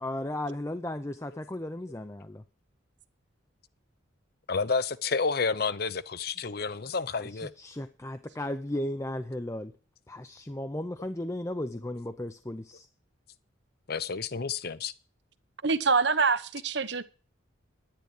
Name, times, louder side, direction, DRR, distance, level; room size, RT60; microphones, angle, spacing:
voice 1, 0.0-2.4 7.2-9.7 10.1-12.9, left 1 dB, 15° left, 0.6 m, -35 dB
voice 2, 4.5-7.5 13.9-14.9, left 4 dB, 55° left, 0.7 m, -30 dB
voice 3, 15.6-17.0, right 4 dB, 60° right, 0.9 m, -25 dB
11.0 x 10.5 x 4.9 m
head